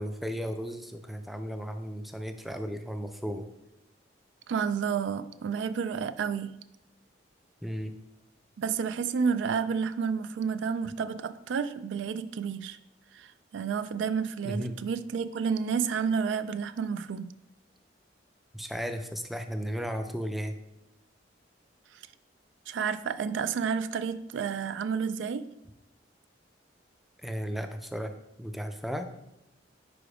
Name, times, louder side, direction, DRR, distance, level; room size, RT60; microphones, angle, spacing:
voice 1, 0.0-3.5 7.6-8.0 14.4-14.9 18.5-20.6 27.2-29.1, equal, ahead, 7 dB, 0.4 m, -35 dB
voice 2, 4.5-6.5 8.6-12.8 13.1-17.3 21.9-22.0 22.7-25.5, right 6 dB, 80° right, 13 dB, 0.3 m, -30 dB
5.0 x 4.9 x 4.8 m, 0.88 s
head